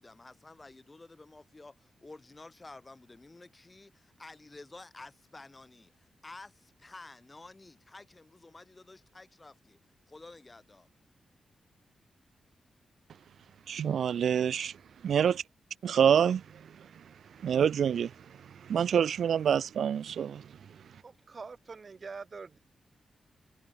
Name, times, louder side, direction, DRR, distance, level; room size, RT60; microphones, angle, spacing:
voice 1, 0.0-9.8 10.1-10.9, left 2 dB, 20° left, 6.2 m, -51 dB
voice 2, 13.7-14.7 15.0-15.4 15.8-16.4 17.4-18.1 18.7-20.4, right 8 dB, 75° right, 0.3 m, -26 dB
voice 3, 20.9-22.6, right 4 dB, 35° right, 1.9 m, -45 dB
wide cardioid pair, 160°, 0 cm